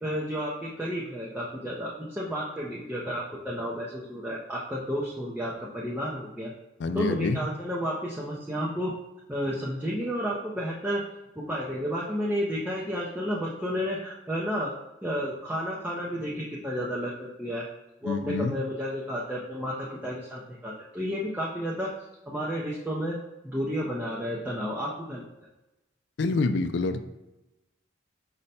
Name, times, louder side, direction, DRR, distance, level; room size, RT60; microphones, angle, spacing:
voice 1, 0.0-6.5 6.9-8.9 9.3-11.0 11.4-14.7 15.0-17.7 18.0-21.9 22.3-23.2 23.4-25.3, equal, 10° right, -5 dB, 0.5 m, -31 dB
voice 2, 6.8-7.4 18.0-18.6 26.2-27.0, left 3 dB, 60° left, 9 dB, 0.3 m, -27 dB
5.2 x 2.1 x 4.1 m, 0.97 s
head